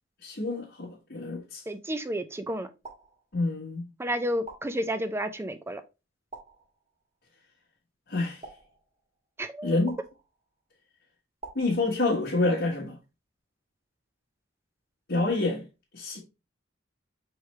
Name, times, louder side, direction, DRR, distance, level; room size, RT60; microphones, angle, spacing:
voice 1, 0.2-1.6 3.3-3.8 8.1-8.4 9.6-10.0 11.5-12.9 15.1-15.6 15.9-16.2, left 2 dB, 60° left, 1.2 m, -27 dB
voice 2, 1.7-2.7 4.0-5.8 9.4-9.8, equal, 15° right, 0.4 m, -31 dB
sound 1, 2.8-3.7 4.5-5.3 6.3-7.2 8.4-9.3 9.9-10.7 11.4-12.4, right 4 dB, 35° right, 1.5 m, -49 dB
4.8 x 3.1 x 3.1 m
head